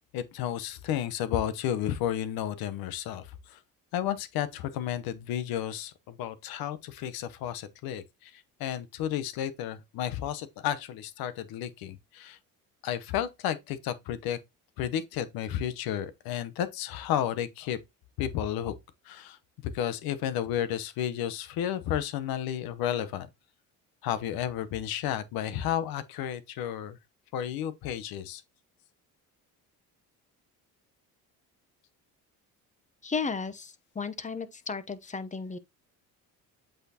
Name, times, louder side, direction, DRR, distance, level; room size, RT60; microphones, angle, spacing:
voice 1, 0.0-3.6 3.9-12.4 12.8-14.4 14.8-17.8 18.2-18.7 19.0-19.4 19.6-23.3 24.0-27.0 27.3-28.4, left 10 dB, 85° left, 0.9 m, -32 dB
voice 2, 33.0-35.6, left 5 dB, 20° left, 0.7 m, -34 dB
7.9 x 4.4 x 2.8 m
cardioid pair, 95°, 35 cm